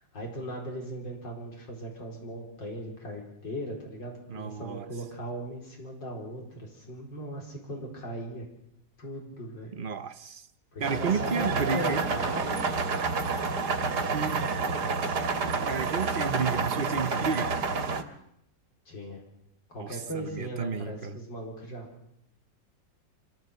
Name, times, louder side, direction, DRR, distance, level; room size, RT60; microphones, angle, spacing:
voice 1, 0.1-8.5 9.0-9.8 10.7-12.7 14.6-15.2 18.9-19.2 19.7-21.9, right 1 dB, 85° left, 5.2 m, -38 dB
voice 2, 4.3-4.9 9.7-10.5 10.8-12.0 14.1-14.6 15.7-17.5 19.8-21.2, right 6 dB, 40° right, 0.8 m, -32 dB
sound 1, 10.8-18.0, right 4 dB, 70° right, 2.2 m, -29 dB
25.5 x 17.0 x 8.2 m
omnidirectional pair, 1.9 m